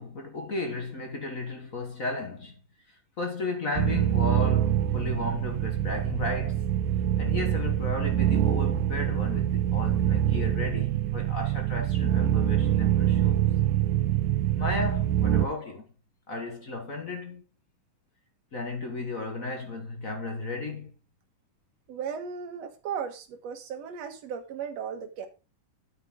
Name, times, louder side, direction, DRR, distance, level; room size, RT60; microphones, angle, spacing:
voice 1, 0.0-2.6 2.9-6.7 7.2-13.5 14.6-15.9 16.3-17.4 18.5-20.9, left 3 dB, 55° left, 0.9 m, -34 dB
sound 1, 3.8-15.5, right 11 dB, 85° right, 2.3 m, -25 dB
voice 2, 21.9-25.3, right 7 dB, 55° right, 2.4 m, -36 dB
9.3 x 9.2 x 3.8 m
omnidirectional pair, 3.7 m